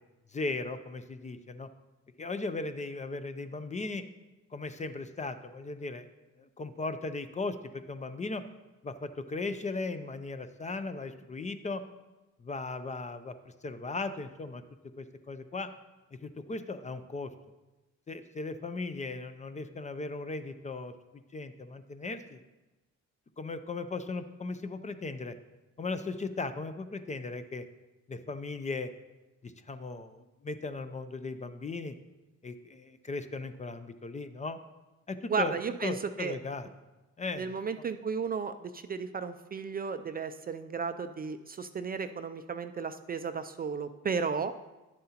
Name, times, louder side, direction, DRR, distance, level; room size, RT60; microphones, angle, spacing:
voice 1, 0.3-1.7 2.2-4.0 4.5-6.0 6.6-8.4 8.8-11.8 12.4-13.3 13.6-14.6 15.0-15.7 16.2-17.3 18.1-20.9 21.3-22.4 23.4-25.3 25.8-27.6 28.1-28.9 29.4-31.9 32.4-34.6 35.1-35.6 35.8-36.7 37.2-37.6, left 3 dB, 25° left, 10 dB, 0.5 m, -37 dB
voice 2, 35.3-36.4 37.4-44.5, right 5 dB, 30° right, 9 dB, 0.4 m, -34 dB
10.5 x 7.5 x 2.9 m, 1.1 s
cardioid pair, 90°, 30 cm